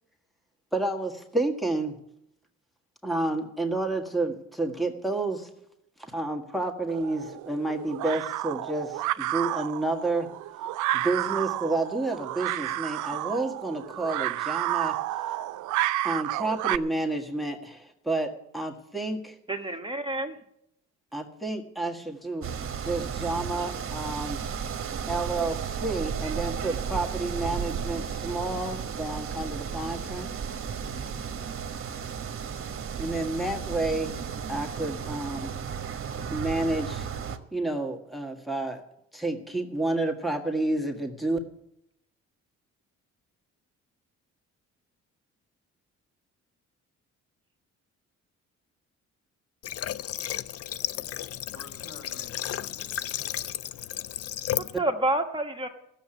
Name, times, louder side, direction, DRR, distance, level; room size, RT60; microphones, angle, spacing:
voice 1, 0.7-1.9 3.0-5.5 6.1-10.3 10.9-15.0 16.0-19.4 21.1-22.5 22.8-24.4 25.1-30.3 33.0-34.2 34.5-35.5 36.3-37.1 37.5-38.8 39.1-41.4, right 2 dB, ahead, 4 dB, 1.6 m, -30 dB
sound 1, 6.9-16.8, right 16 dB, 80° right, 0.5 m, -31 dB
voice 2, 19.5-20.4 54.6-55.7, right 1 dB, 15° right, 4 dB, 1.2 m, -28 dB
sound 2, 22.4-37.4, right 7 dB, 45° right, 1.3 m, -34 dB
Water / Water tap faucet, 49.6-54.8, left 12 dB, 55° left, 0.4 m, -33 dB
voice 3, 50.9-52.9, left 2 dB, 75° left, 3 dB, 4.4 m, -50 dB
14.5 x 7.3 x 9.0 m, 0.79 s
cardioid pair, 90°, 30 cm